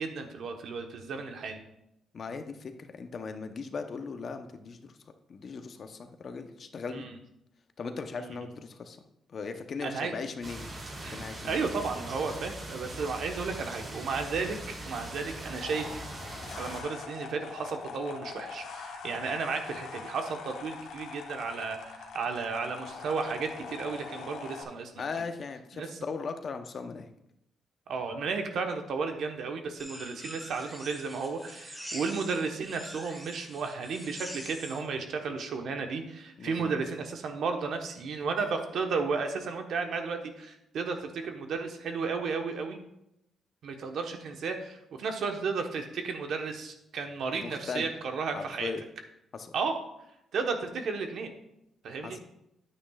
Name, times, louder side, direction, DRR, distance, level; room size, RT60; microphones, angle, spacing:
voice 1, 0.0-1.6 6.9-7.2 8.2-8.5 9.8-10.1 11.0-14.6 14.9-16.0 16.6-24.9 25.7-26.0 27.9-42.8 43.6-48.7 49.5-49.8 50.3-51.3 51.8-52.2, right 4 dB, 70° right, 5 dB, 1.1 m, -33 dB
voice 2, 2.1-4.8 5.3-7.1 7.8-9.0 9.3-10.6 11.1-11.8 25.0-27.1 36.4-36.8 47.4-47.9 48.3-48.8 49.3-49.5 52.0-52.2, left 4 dB, 50° left, 7 dB, 0.8 m, -38 dB
sound 1, 10.4-16.8, right 1 dB, 40° right, 3.0 m, -41 dB
sound 2, 15.6-24.6, left 5 dB, 85° left, 1.2 m, -43 dB
sound 3, 29.8-34.8, equal, 10° right, 1.8 m, -44 dB
9.7 x 8.8 x 2.4 m, 0.83 s
cardioid pair, 85°, 0 cm